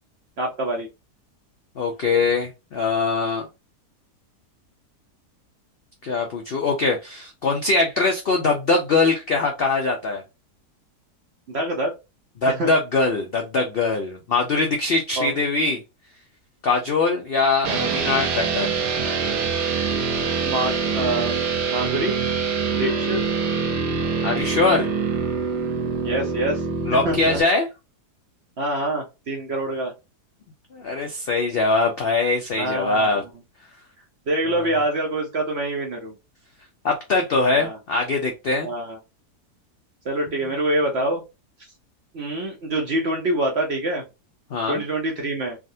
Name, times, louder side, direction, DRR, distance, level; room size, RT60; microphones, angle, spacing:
voice 1, 0.4-0.9 11.5-11.9 12.5-12.7 15.2-15.3 20.4-22.2 22.7-23.2 26.0-26.6 27.0-27.4 28.6-29.9 32.6-33.2 34.3-36.2 37.5-37.8 38.6-39.0 40.0-41.2 42.1-44.0 44.7-45.6, right 1 dB, 60° right, 1 dB, 0.7 m, -25 dB
voice 2, 1.8-3.5 6.0-10.2 12.4-15.8 16.6-18.7 24.2-24.9 26.8-27.7 30.7-33.2 34.5-34.7 36.8-38.7 44.5-44.8, left 3 dB, 80° left, 2 dB, 0.5 m, -22 dB
sound 1, 17.6-27.4, right 5 dB, 90° right, 1.3 m, -25 dB
3.5 x 2.4 x 2.6 m, 0.26 s
omnidirectional pair, 1.7 m